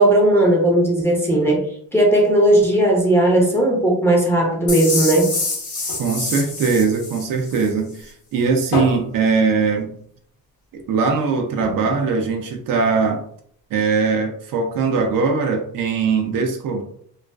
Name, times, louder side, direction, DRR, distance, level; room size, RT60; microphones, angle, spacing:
voice 1, 0.0-1.6 1.9-5.3, right 1 dB, 5° left, -2 dB, 0.6 m, -16 dB
sound 1, 4.7-7.7, left 3 dB, 40° left, 1.1 m, -26 dB
sound 2, 5.0-7.6 8.0-10.2 10.6-10.7 11.0-11.1 11.6-13.1 13.7-13.8, left 2 dB, 70° left, 0.8 m, -32 dB
voice 2, 6.0-9.9 10.7-13.2 13.7-16.8, right 5 dB, 65° right, 3 dB, 0.5 m, -21 dB
2.4 x 2.3 x 2.2 m, 0.63 s
cardioid pair, 130°, 37 cm